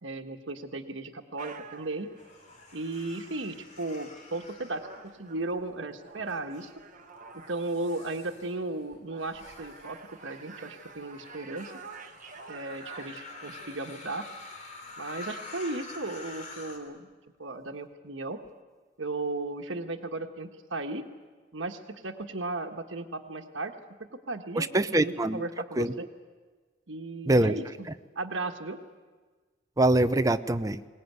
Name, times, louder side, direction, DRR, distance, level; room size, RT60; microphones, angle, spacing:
voice 1, 0.0-2.1 2.7-4.9 5.2-6.7 7.3-11.7 12.5-14.3 15.0-17.1 17.4-18.4 19.0-21.1 21.5-26.1 26.9-27.6 28.1-28.8, right 2 dB, 80° right, 5 dB, 1.4 m, -35 dB
sound 1, 1.4-17.0, right 4 dB, 45° right, 1.5 m, -51 dB
sound 2, 2.2-5.6 6.2-6.7 7.4-16.8, left 3 dB, 40° left, 3.5 m, -47 dB
voice 2, 24.5-25.4 25.7-25.9 27.3-27.5 29.8-30.8, right 1 dB, 20° right, 10 dB, 0.6 m, -24 dB
22.5 x 19.0 x 9.5 m, 1.4 s
head